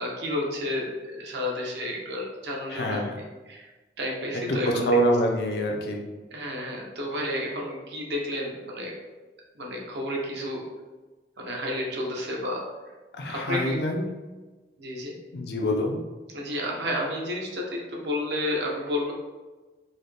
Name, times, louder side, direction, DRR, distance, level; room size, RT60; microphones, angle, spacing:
voice 1, 0.0-3.0 3.5-3.7 4.0-5.0 6.3-8.9 9.6-10.6 11.4-12.6 13.3-13.8 14.8-15.1 16.3-19.2, left 1 dB, 80° right, -1 dB, 0.8 m, -31 dB
voice 2, 2.7-3.2 4.5-6.0 13.1-14.1 15.3-16.0, equal, 65° left, 2 dB, 0.5 m, -25 dB
4.0 x 2.1 x 3.3 m, 1.2 s
head